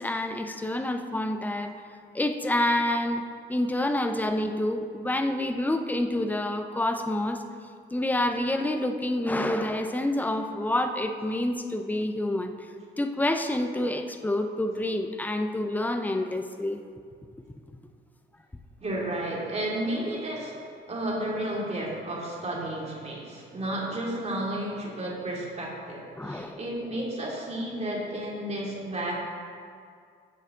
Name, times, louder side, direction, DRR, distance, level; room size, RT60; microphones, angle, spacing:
voice 1, 0.0-1.8 2.1-3.2 3.5-7.4 7.9-12.5 13.0-16.8 26.2-26.6, left 1 dB, 10° left, 6 dB, 0.8 m, -28 dB
voice 2, 18.8-20.6 20.9-29.1, right 1 dB, 35° right, -3 dB, 2.9 m, -32 dB
15.5 x 7.2 x 3.9 m, 2.2 s
cardioid pair, 90°, 20 cm